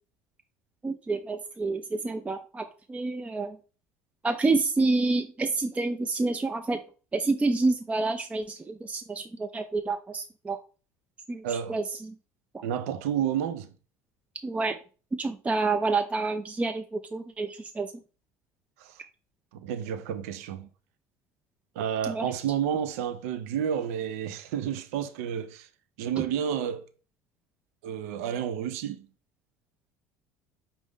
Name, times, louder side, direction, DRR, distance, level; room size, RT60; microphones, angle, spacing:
voice 1, 0.8-3.6 4.2-6.8 7.1-10.6 11.3-11.4 11.7-12.1 14.4-14.8 15.2-17.9 22.1-22.3, right 3 dB, 15° right, 0.4 m, -28 dB
voice 2, 11.4-11.8 12.6-13.7 18.8-19.0 19.5-20.7 21.8-25.7 26.0-26.8 27.8-29.1, right 9 dB, 75° right, 0.5 m, -30 dB
5.3 x 2.6 x 3.5 m
hypercardioid pair, 75°, 8 cm